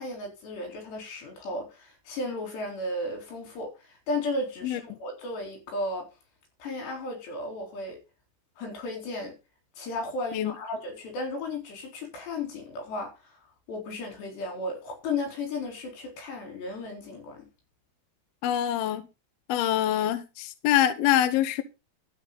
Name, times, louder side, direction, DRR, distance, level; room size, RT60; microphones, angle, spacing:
voice 1, 0.0-6.0 6.6-8.0 8.6-9.4 9.8-13.1 13.7-17.5, left 2 dB, 60° left, 6.1 m, -34 dB
voice 2, 18.4-19.0 19.5-21.6, left 11 dB, 75° left, 2.3 m, -25 dB
12.5 x 9.7 x 4.0 m
omnidirectional pair, 5.7 m